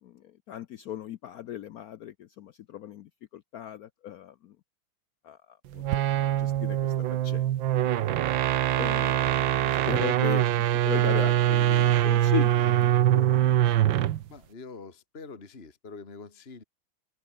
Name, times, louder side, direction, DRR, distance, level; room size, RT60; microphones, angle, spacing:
voice 1, 0.0-4.6 5.2-5.8 6.2-6.9 7.2-7.5 8.8-13.4, left 12 dB, 90° left, 0.8 m, -37 dB
sound 1, 5.7-14.2, right 12 dB, 65° right, 1.5 m, -23 dB
voice 2, 14.3-16.6, left 4 dB, 30° left, 2.4 m, -45 dB
open air
omnidirectional pair, 2.3 m